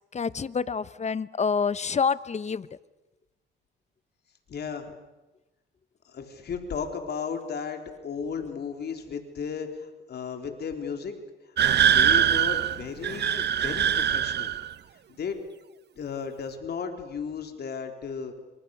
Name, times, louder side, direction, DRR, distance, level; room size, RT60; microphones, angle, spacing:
voice 1, 0.1-2.7, left 5 dB, 35° left, 17 dB, 0.9 m, -27 dB
voice 2, 4.5-4.9 6.1-11.2 11.6-14.5 15.2-15.4 16.0-18.3, left 6 dB, 55° left, 5 dB, 3.8 m, -34 dB
sound 1, 11.6-14.7, right 9 dB, 60° right, 1.0 m, -23 dB
26.5 x 26.5 x 6.6 m, 1.1 s
cardioid pair, 90°, 20 cm